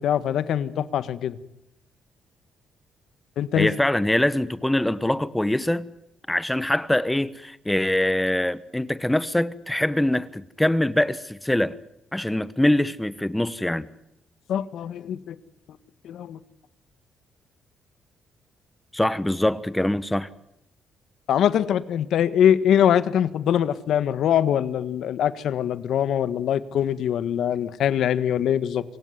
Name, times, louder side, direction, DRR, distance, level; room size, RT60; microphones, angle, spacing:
voice 1, 0.0-1.4 3.4-3.7 14.5-15.3 16.0-16.4 21.3-28.8, left 9 dB, 75° left, 1.5 m, -23 dB
voice 2, 3.5-5.9 6.3-11.8 12.1-13.9 18.9-20.3, left 1 dB, 10° left, 1.0 m, -23 dB
27.5 x 17.0 x 9.7 m
cardioid pair, 90°, 0 cm